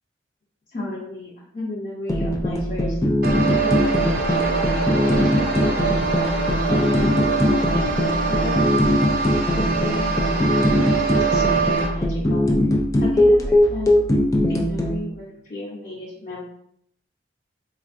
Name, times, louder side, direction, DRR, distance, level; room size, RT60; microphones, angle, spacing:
voice 1, 0.7-3.0 3.6-4.8 5.1-6.4 6.7-8.8 9.5-12.5 13.0-13.9 14.5-16.4, left 1 dB, 40° left, -7 dB, 0.7 m, -33 dB
sound 1, 2.1-15.0, left 1 dB, 20° left, 0.3 m, -20 dB
sound 2, 3.2-11.9, right 4 dB, 55° right, 0.5 m, -24 dB
4.2 x 2.5 x 2.5 m, 0.72 s
head